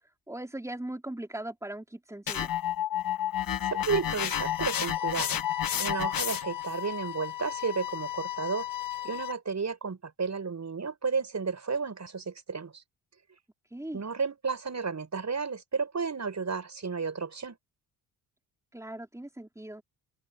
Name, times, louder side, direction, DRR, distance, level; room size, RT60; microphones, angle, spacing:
voice 1, 0.3-2.5 13.7-14.0 18.7-19.8, right 1 dB, 5° right, 3.8 m, -39 dB
sound 1, 2.3-6.7, left 10 dB, 50° left, 1.3 m, -30 dB
voice 2, 3.7-5.4 5.8-8.7 9.0-12.8 13.9-17.6, right 5 dB, 35° right, 6.4 m, -32 dB
sound 2, 4.3-9.3, left 14 dB, 75° left, 4.4 m, -37 dB
cardioid pair, 75°, 45 cm